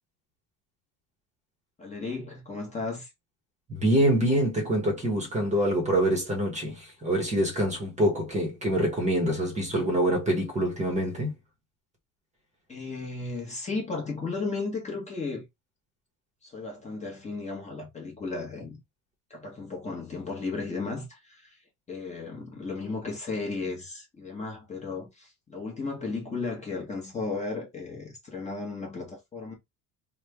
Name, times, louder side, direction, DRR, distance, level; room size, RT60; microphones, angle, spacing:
voice 1, 1.8-3.1 12.7-15.5 16.4-18.8 19.3-29.5, left 3 dB, 20° left, 0.9 m, -35 dB
voice 2, 3.7-11.3, right 1 dB, 20° right, 0.9 m, -25 dB
3.1 x 2.1 x 3.3 m
cardioid pair, 155°, 37 cm